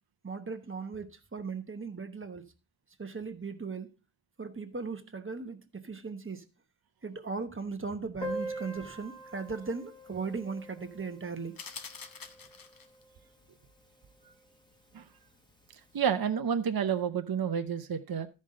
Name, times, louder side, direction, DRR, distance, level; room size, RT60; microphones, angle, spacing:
voice 1, 0.2-2.4 3.0-3.9 4.4-6.4 7.0-11.5, right 4 dB, 25° right, 1.0 m, -38 dB
Piano, 8.2-13.6 13.8-13.9 14.1-14.3 14.6-14.7 15.5-15.6, right 1 dB, 10° left, 1.4 m, -43 dB
sound 1, 11.6-13.0, left 5 dB, 45° left, 1.0 m, -45 dB
voice 2, 15.9-18.3, right 7 dB, 50° right, 0.8 m, -29 dB
13.5 x 5.4 x 3.7 m
wide cardioid pair, 90°, 46 cm